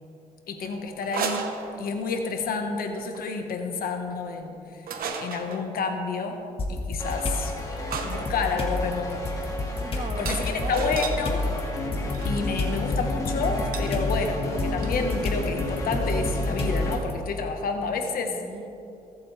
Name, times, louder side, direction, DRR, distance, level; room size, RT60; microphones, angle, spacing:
voice 1, 0.5-1.5 1.8-4.8 5.2-6.4 6.7-7.5 8.0-9.2 10.2-11.4 12.2-18.3, left 4 dB, 75° left, 4 dB, 1.4 m, -29 dB
sound 1, 1.0-2.2 3.0-3.2 4.9-5.7 7.2-7.3 7.9-11.2 12.1-12.4 13.7-13.9 14.2-14.3 14.5-15.0, right 6 dB, 75° right, 1.1 m, -34 dB
voice 2, 3.4-4.0 5.5-5.7 9.8-11.1 12.0-12.3 17.9-18.7, right 2 dB, 35° right, 6 dB, 1.3 m, -39 dB
sound 2, 6.6-7.4 7.9-17.1, left 2 dB, 40° left, 1.9 m, -29 dB
sound 3, 7.0-17.0, left 1 dB, 20° left, 2.2 m, -33 dB
22.5 x 8.0 x 3.4 m, 2.8 s
cardioid pair, 85°, 15 cm